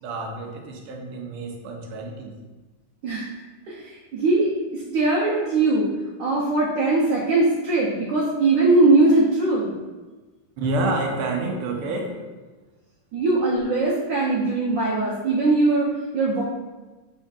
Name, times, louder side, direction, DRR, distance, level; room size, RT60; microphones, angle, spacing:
voice 1, 0.0-2.4 10.6-12.2, right 2 dB, 90° right, 1 dB, 1.6 m, -28 dB
voice 2, 3.7-5.9 6.2-9.7 13.1-15.9 16.1-16.4, right 2 dB, 70° right, -4 dB, 1.2 m, -20 dB
5.5 x 3.5 x 2.3 m, 1.3 s
omnidirectional pair, 2.4 m